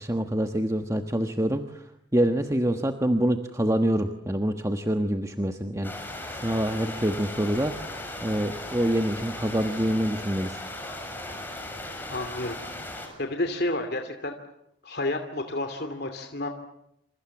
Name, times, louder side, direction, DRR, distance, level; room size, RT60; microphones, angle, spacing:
voice 1, 0.0-1.8 2.1-6.1 6.4-7.7 8.2-10.6, right 1 dB, 15° right, 6 dB, 1.3 m, -26 dB
sound 1, 5.8-13.1, left 1 dB, 10° left, 6.7 m, -37 dB
voice 2, 12.1-12.9 13.2-14.3 14.8-16.5, left 2 dB, 55° left, 6 dB, 2.8 m, -30 dB
28.5 x 28.0 x 7.3 m, 0.79 s
head